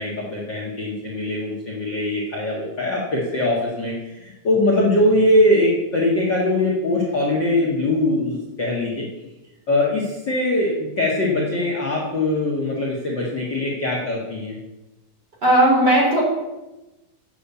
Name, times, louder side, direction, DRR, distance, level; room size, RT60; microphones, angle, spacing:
voice 1, 0.0-9.1 9.7-14.6, left 1 dB, 40° left, -4 dB, 1.9 m, -21 dB
voice 2, 15.4-16.2, right 1 dB, 30° right, -4 dB, 4.0 m, -16 dB
8.5 x 7.6 x 8.3 m, 1.0 s
omnidirectional pair, 3.9 m